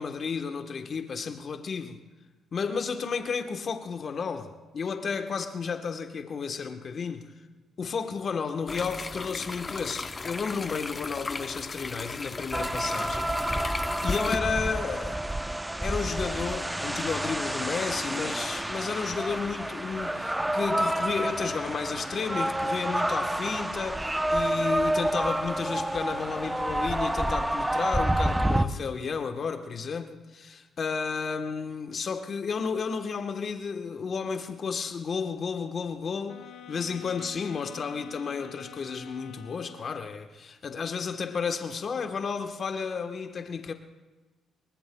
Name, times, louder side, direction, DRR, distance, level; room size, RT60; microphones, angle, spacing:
voice 1, 0.0-2.0 2.5-7.3 7.8-13.7 14.0-15.2 15.8-43.7, left 5 dB, 50° left, 1.2 m, -32 dB
sound 1, 8.7-14.4, left 3 dB, 30° left, 0.7 m, -36 dB
sound 2, 12.5-28.7, right 1 dB, 10° right, 0.7 m, -29 dB
sound 3, 36.3-40.2, left 9 dB, 75° left, 1.5 m, -47 dB
26.5 x 23.0 x 2.3 m
cardioid pair, 90°, 0 cm